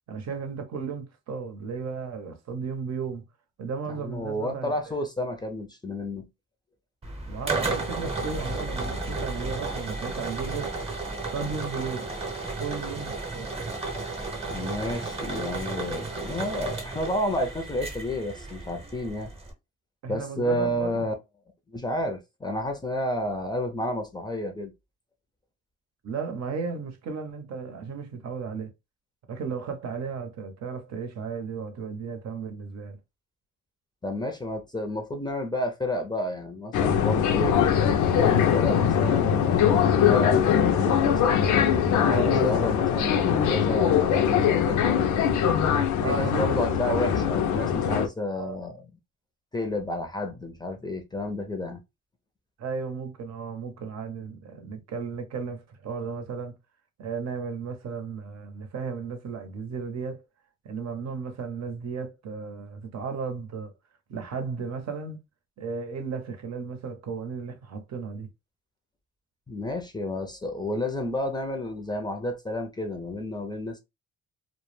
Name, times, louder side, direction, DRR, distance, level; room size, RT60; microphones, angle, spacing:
voice 1, 0.1-3.2 3.6-4.7 7.3-10.7 11.3-12.1 12.6-13.6 20.0-21.1 26.0-28.7 29.3-33.0 42.0-42.5 46.0-47.4 48.4-48.6 52.6-56.6 57.0-60.2 60.6-63.7 64.1-65.2 65.6-68.3, right 5 dB, 60° right, 0.7 m, -34 dB
voice 2, 3.9-6.3 14.5-19.3 20.1-21.1 21.7-24.7 34.0-37.6 38.1-41.2 41.9-44.8 46.0-48.9 49.5-51.8 69.5-73.8, left 1 dB, 15° left, 0.5 m, -31 dB
sound 1, 7.0-19.5, right 3 dB, 20° right, 0.8 m, -33 dB
sound 2, 36.7-48.1, left 8 dB, 75° left, 0.5 m, -22 dB
2.1 x 2.1 x 3.1 m
cardioid pair, 90°, 30 cm